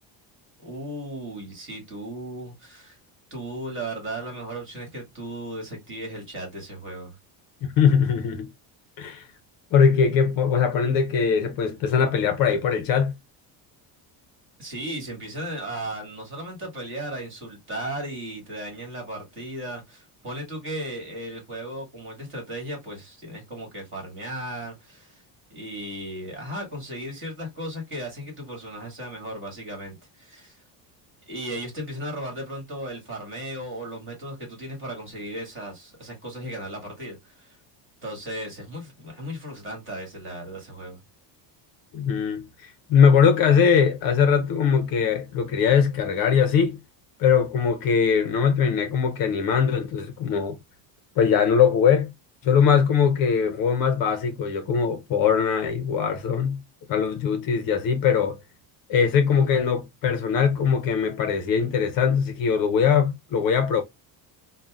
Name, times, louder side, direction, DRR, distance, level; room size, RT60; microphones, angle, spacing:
voice 1, 0.6-3.0 3.3-7.2 14.6-25.2 25.5-30.6 31.3-37.6 38.0-41.0, right 1 dB, 25° right, 1.6 m, -36 dB
voice 2, 7.6-8.5 9.0-9.3 9.7-13.1 41.9-46.8 47.2-50.6 51.2-52.1 52.4-56.6 56.9-58.4 58.9-63.8, left 7 dB, 50° left, 0.6 m, -21 dB
5.2 x 2.1 x 2.3 m
cardioid pair, 175°, 44 cm